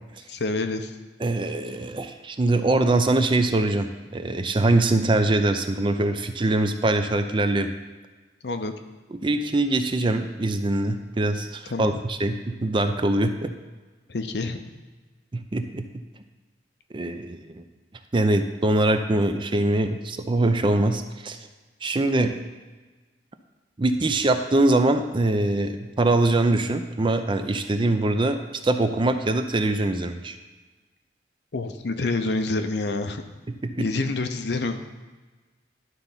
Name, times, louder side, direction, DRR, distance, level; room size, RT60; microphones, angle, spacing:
voice 1, 0.3-1.0 8.4-8.7 11.7-12.0 14.1-14.6 31.5-33.2 33.8-34.8, left 3 dB, 65° left, 7 dB, 0.7 m, -27 dB
voice 2, 1.2-7.7 9.2-13.5 15.3-15.8 16.9-17.6 18.1-21.4 21.8-22.3 23.8-30.4 33.6-33.9, right 2 dB, 30° right, 7 dB, 0.5 m, -23 dB
11.5 x 3.9 x 5.7 m, 1.3 s
head